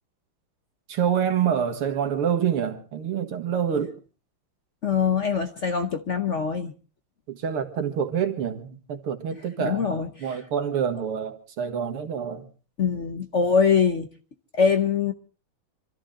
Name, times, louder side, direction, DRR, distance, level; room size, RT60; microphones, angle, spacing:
voice 1, 0.9-3.9 7.3-12.5, right 8 dB, 90° right, 2.5 m, -27 dB
voice 2, 4.8-6.7 9.6-10.4 12.8-14.1 14.5-15.1, left 6 dB, 55° left, 0.8 m, -23 dB
25.5 x 14.0 x 3.8 m
omnidirectional pair, 2.4 m